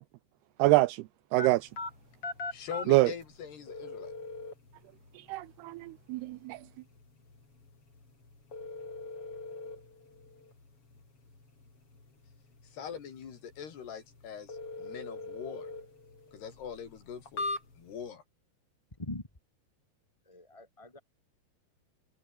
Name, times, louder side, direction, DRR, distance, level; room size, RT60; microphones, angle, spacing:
voice 1, 0.6-1.0 1.3-1.7 2.9-3.1 5.3-6.6, right 19 dB, 80° right, 2.6 m, -25 dB
sound 1, 1.4-18.1, left 3 dB, 35° left, 7.0 m, -43 dB
voice 2, 2.5-4.1 12.7-15.7 16.3-17.5 17.8-18.2, left 7 dB, 75° left, 5.8 m, -42 dB
voice 3, 20.2-21.0, left 2 dB, 15° left, 1.3 m, -42 dB
omnidirectional pair, 4.7 m